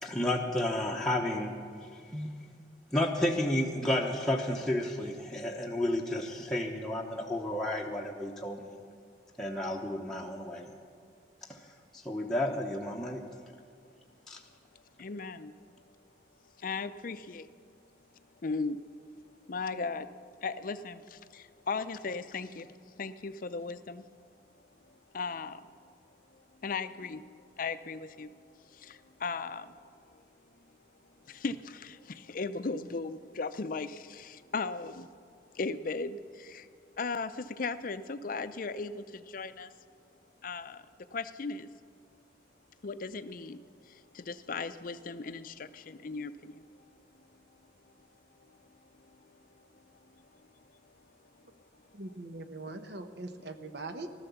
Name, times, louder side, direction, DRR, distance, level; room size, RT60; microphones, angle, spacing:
voice 1, 0.0-1.5 2.1-2.3 2.9-8.8 9.4-10.7 11.5-11.6 11.9-13.2 14.3-14.4, left 1 dB, 5° left, -2 dB, 0.9 m, -31 dB
voice 2, 15.0-15.5 16.6-17.5 18.4-18.8 19.5-20.1 20.4-24.1 25.1-25.7 26.6-27.2 27.6-29.8 30.1-30.2 31.3-35.1 35.5-36.7 37.0-39.7 40.4-40.8 41.1-41.7 42.8-46.7 48.4-48.6 49.0-49.2 49.5-49.7, left 4 dB, 50° left, 12 dB, 0.5 m, -37 dB
voice 3, 51.9-54.1, right 2 dB, 65° right, 8 dB, 1.0 m, -41 dB
15.5 x 12.5 x 7.0 m, 2.2 s
head